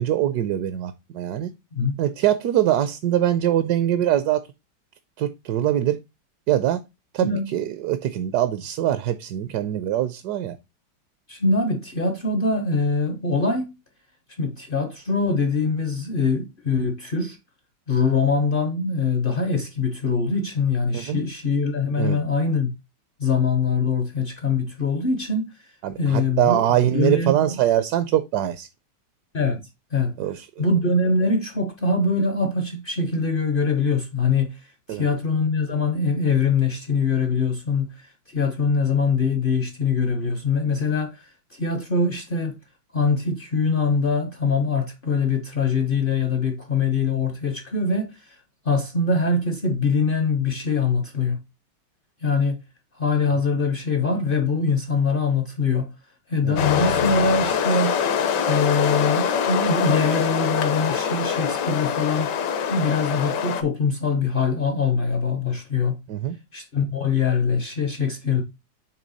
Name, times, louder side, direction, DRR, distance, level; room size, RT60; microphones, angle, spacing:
voice 1, 0.0-1.5 2.0-4.4 5.2-6.0 6.5-6.8 7.1-10.6 20.9-21.2 22.0-22.2 25.8-28.7 30.2-30.7 34.9-35.0 56.4-56.6 66.1-66.4, right 12 dB, 70° right, 1.1 m, -23 dB
voice 2, 11.3-13.7 14.4-17.4 17.9-22.7 23.2-25.5 26.0-26.6 26.9-27.6 29.3-29.6 29.9-30.1 30.6-34.6 34.9-41.2 41.5-42.6 42.9-48.4 48.6-51.4 52.2-52.6 53.0-55.9 56.3-58.0 58.5-62.3 62.7-66.0 66.5-68.4, left 4 dB, 55° left, 0.6 m, -23 dB
sound 1, 56.6-63.6, left 7 dB, 75° left, 1.4 m, -24 dB
7.4 x 3.2 x 4.0 m
omnidirectional pair, 1.9 m